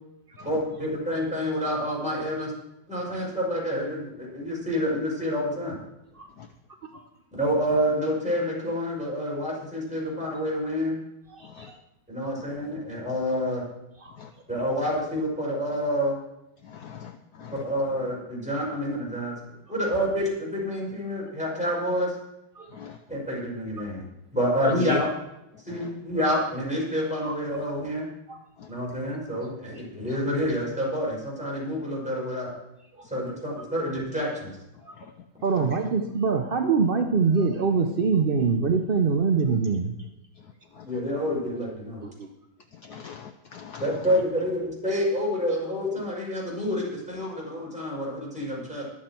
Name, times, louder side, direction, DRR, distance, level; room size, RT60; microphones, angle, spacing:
voice 1, 0.4-2.5 2.9-5.8 7.3-11.0 12.1-13.6 14.5-16.1 17.6-19.3 19.7-22.1 23.1-24.0 24.3-25.1 25.7-28.1 28.7-32.5 33.1-34.5 35.6-35.7 40.8-42.0 43.8-48.8, equal, 5° right, -4 dB, 5.5 m, -28 dB
voice 2, 11.3-11.8 12.2-12.3 14.0-14.1 22.5-22.8 27.2-27.3 28.3-28.4 28.7-28.8 29.4-29.8 30.1-30.2 32.9-33.0 33.6-33.7 34.8-34.9 35.4-39.9 42.0-42.3, right 5 dB, 70° right, 4 dB, 0.5 m, -25 dB
voice 3, 16.7-17.1 17.4-17.6 22.7-23.0 24.6-25.0 25.7-25.9 33.1-33.2 42.9-44.0, left 8 dB, 65° left, 7 dB, 1.1 m, -36 dB
22.0 x 7.4 x 4.5 m, 0.89 s
omnidirectional pair, 2.1 m